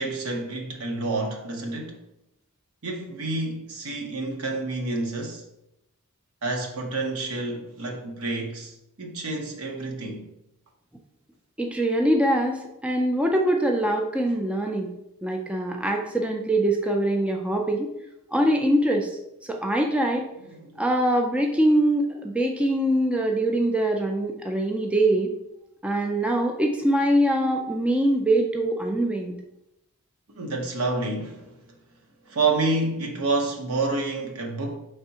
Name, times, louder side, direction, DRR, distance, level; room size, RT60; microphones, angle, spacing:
voice 1, 0.0-2.0 2.8-5.4 6.4-10.3 20.5-20.8 30.3-31.7 32.2-34.8, right 3 dB, 75° right, 0.8 m, -29 dB
voice 2, 11.6-14.9 15.2-17.9 18.3-19.1 19.5-20.3 20.8-25.3 25.8-29.4, right 1 dB, 5° right, 0.3 m, -23 dB
5.4 x 3.3 x 2.8 m
head